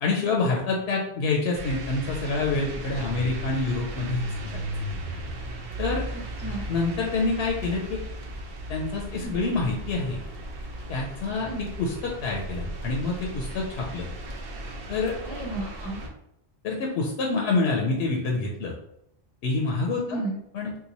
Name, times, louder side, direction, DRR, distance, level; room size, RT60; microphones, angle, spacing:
voice 1, 0.0-4.6 5.8-6.1 6.7-8.0 8.7-10.2 10.9-11.5 11.8-14.1 14.9-15.1 16.6-18.7 19.4-20.2 20.5-20.7, left 3 dB, 75° left, -1 dB, 0.8 m, -27 dB
sound 1, 1.5-16.1, right 1 dB, 65° right, 0.8 m, -36 dB
voice 2, 6.1-6.6 9.1-9.3 11.4-11.7 15.2-16.0 20.1-20.4, right 2 dB, 15° left, -2 dB, 0.7 m, -33 dB
2.9 x 2.1 x 3.9 m, 0.78 s
omnidirectional pair, 1.1 m